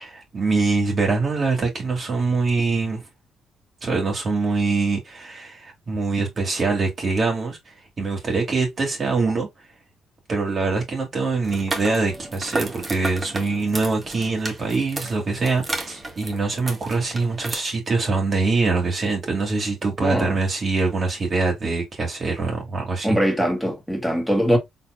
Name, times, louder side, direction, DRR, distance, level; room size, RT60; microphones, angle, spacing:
voice 1, 0.0-3.0 3.8-7.6 8.0-9.5 10.3-23.2, right 3 dB, 40° right, 2.0 m, -24 dB
sound 1, 11.4-17.5, right 2 dB, 25° right, 1.2 m, -33 dB
voice 2, 20.0-20.4 23.0-24.6, equal, 5° right, 1.7 m, -21 dB
4.3 x 3.5 x 2.2 m
cardioid pair, 90°, 0 cm